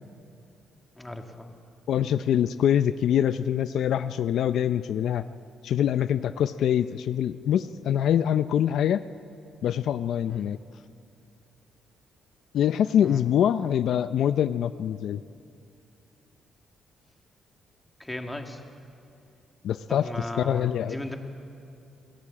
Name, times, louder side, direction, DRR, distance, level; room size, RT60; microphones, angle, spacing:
voice 1, 1.0-1.5 10.3-10.5 13.0-13.2 18.0-18.6 19.9-21.2, left 1 dB, 10° left, 3 dB, 2.1 m, -36 dB
voice 2, 1.9-5.2 5.6-9.0 9.6-10.6 12.5-15.2 19.6-20.1 20.4-21.0, left 10 dB, 70° left, 12 dB, 0.5 m, -24 dB
27.0 x 17.5 x 8.6 m, 2.6 s
cardioid pair, 125°, 0 cm